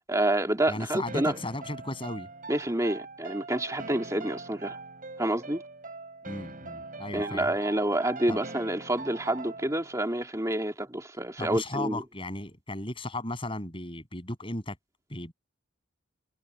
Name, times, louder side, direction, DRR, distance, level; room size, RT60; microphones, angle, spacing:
voice 1, 0.1-1.4 2.5-4.8 5.2-5.6 7.1-12.0, right 1 dB, 15° right, 2.6 m, -28 dB
voice 2, 0.7-2.3 6.2-7.5 8.3-8.4 11.4-14.8 15.1-15.3, left 1 dB, 25° left, 7.7 m, -35 dB
sound 1, 1.1-10.0, right 3 dB, 40° right, 7.3 m, -42 dB
head